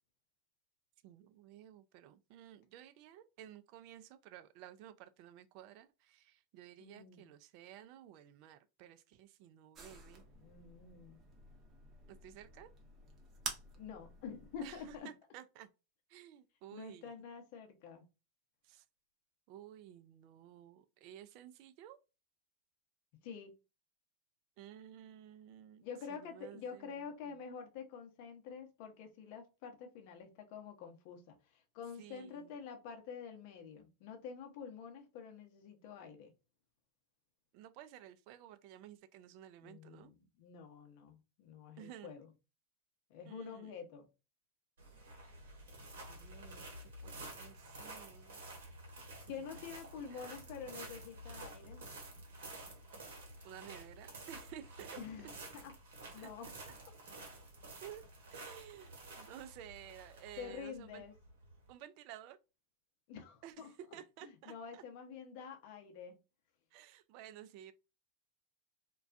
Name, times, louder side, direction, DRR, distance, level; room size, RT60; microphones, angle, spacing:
voice 1, 1.0-10.2 12.1-12.7 14.6-15.7 16.1-17.1 18.6-18.8 19.5-22.0 24.6-25.8 26.1-27.4 32.0-32.6 37.5-40.1 41.8-42.1 43.2-43.8 46.0-48.4 49.4-49.5 50.0-50.3 53.4-55.3 56.2-56.3 56.7-56.8 57.8-58.0 58.3-61.0 61.7-62.4 63.4-64.8 66.7-67.7, right 11 dB, 55° right, 0.3 m, -54 dB
voice 2, 6.8-7.3 10.4-11.2 13.7-15.1 16.7-18.1 23.2-23.6 25.8-36.3 39.6-42.3 43.1-44.1 49.3-51.8 55.0-55.7 56.1-56.5 60.4-61.1 63.1-63.7 64.3-66.2, left 6 dB, 60° left, 0.7 m, -48 dB
sound 1, 9.7-15.0, right 4 dB, 30° right, 0.7 m, -50 dB
sound 2, 44.8-61.7, right 2 dB, 75° right, 0.9 m, -51 dB
2.2 x 2.2 x 2.5 m
hypercardioid pair, 100°, 0 cm